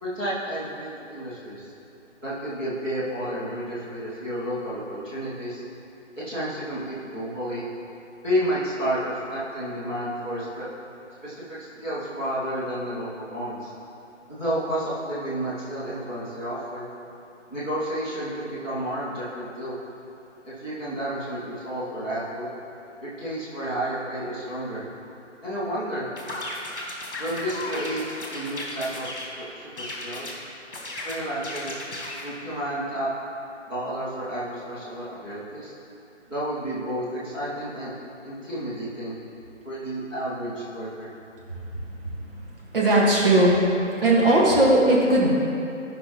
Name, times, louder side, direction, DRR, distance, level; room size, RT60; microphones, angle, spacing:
voice 1, 0.0-1.7 2.2-5.6 6.2-7.6 8.2-10.7 11.2-13.7 14.3-16.9 17.5-19.7 20.4-22.5 23.0-24.8 25.4-26.1 27.2-28.0 28.3-30.3 31.0-31.8 32.2-33.1 33.7-35.7 36.3-37.9 38.2-39.2 39.6-41.1, right 1 dB, 5° right, -14 dB, 0.8 m, -31 dB
sound 1, 26.2-29.3 29.8-30.4 30.7-32.3, left 1 dB, 45° left, 1.6 m, -35 dB
voice 2, 41.9-42.5 42.7-43.6 44.0-45.4, right 1 dB, 45° right, -5 dB, 1.9 m, -19 dB
12.5 x 5.4 x 3.2 m, 2.7 s
figure-of-eight pair, 150°, 37 cm